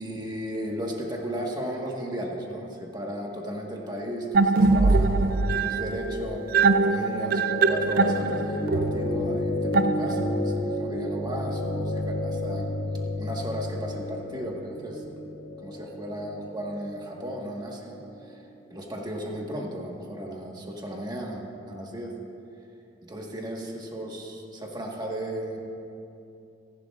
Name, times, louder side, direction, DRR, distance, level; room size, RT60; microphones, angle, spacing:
voice 1, 0.0-12.7 13.2-15.0 15.6-18.4 18.7-22.1 23.0-25.6, equal, 20° right, -1 dB, 1.6 m, -35 dB
sound 1, 4.3-10.5, right 3 dB, 50° right, 0.4 m, -23 dB
sound 2, 6.1-18.1, left 1 dB, 75° left, 3.2 m, -32 dB
26.5 x 11.5 x 2.5 m, 2.7 s
head